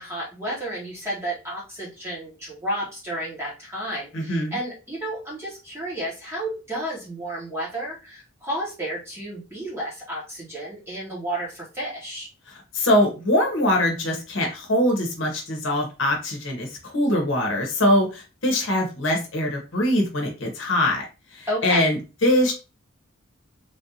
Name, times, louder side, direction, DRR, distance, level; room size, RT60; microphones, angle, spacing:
voice 1, 0.0-12.3 21.5-21.9, right 1 dB, 10° right, -6 dB, 0.9 m, -32 dB
voice 2, 4.1-4.6 12.5-21.1 21.3-22.5, left 1 dB, 65° left, 1 dB, 0.9 m, -23 dB
3.3 x 2.5 x 2.7 m, 0.30 s
head